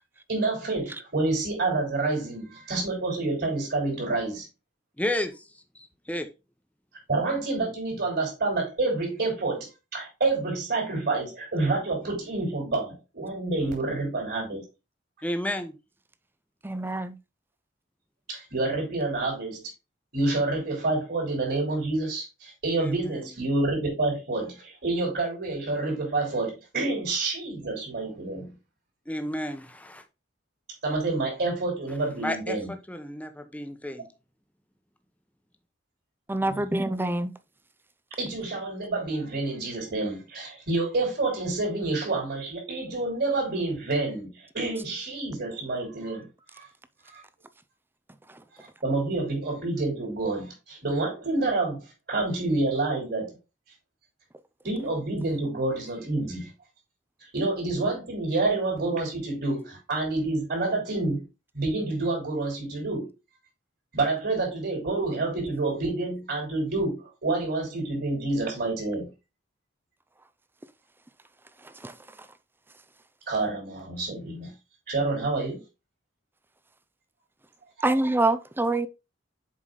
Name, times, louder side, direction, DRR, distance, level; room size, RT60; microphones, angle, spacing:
voice 1, 0.3-4.4 7.1-9.7 9.9-14.6 18.3-19.6 20.1-28.5 30.8-32.7 36.4-36.7 38.2-46.3 46.5-46.7 47.0-47.2 48.5-53.4 54.6-56.5 57.3-61.2 61.5-63.1 63.9-69.1 73.3-74.5 74.9-75.6, right 2 dB, 55° right, 3.9 m, -28 dB
voice 2, 5.0-5.4 5.7-6.3 13.6-13.7 15.2-15.7 22.8-23.4 29.1-30.0 32.2-34.1, left 1 dB, 10° left, 0.9 m, -32 dB
voice 3, 16.6-17.2 36.3-37.3 71.8-71.9 77.8-78.9, right 2 dB, 10° right, 0.6 m, -25 dB
7.4 x 5.0 x 4.0 m
head